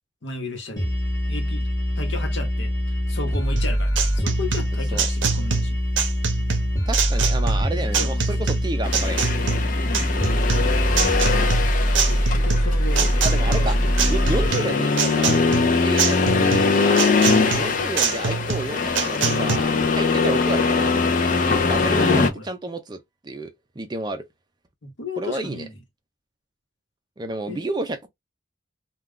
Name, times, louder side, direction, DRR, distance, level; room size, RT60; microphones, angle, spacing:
voice 1, 0.2-0.9 1.3-1.7 2.0-5.8 7.4-8.2 9.8-10.5 11.9-13.1 13.5-13.9 21.9-22.5 24.8-25.7 27.5-27.6, left 2 dB, 70° left, 0.9 m, -34 dB
sound 1, 0.8-14.5, equal, 15° left, 1.0 m, -23 dB
sound 2, 3.6-19.6, right 6 dB, 75° right, 0.6 m, -26 dB
voice 2, 6.9-9.3 13.2-13.8 14.0-20.9 21.4-24.2 25.2-25.6 27.2-28.1, right 2 dB, 20° right, 0.4 m, -31 dB
Accelerating revving vroom, 8.8-22.3, left 4 dB, 40° left, 0.4 m, -22 dB
2.3 x 2.3 x 3.5 m
head